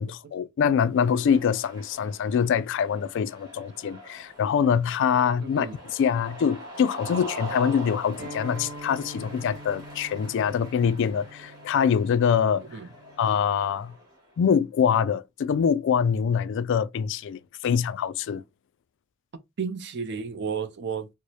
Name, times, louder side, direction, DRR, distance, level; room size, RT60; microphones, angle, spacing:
voice 1, 0.0-12.7 13.2-13.9 14.4-18.4, left 7 dB, 60° left, 0.3 m, -24 dB
Cheering, 0.9-14.3, equal, 20° right, 1.5 m, -43 dB
voice 2, 5.4-5.8 12.7-12.9 19.6-21.1, right 6 dB, 55° right, 0.5 m, -32 dB
Acoustic guitar, 8.2-13.4, right 1 dB, 85° right, 1.0 m, -44 dB
4.6 x 2.1 x 2.7 m
head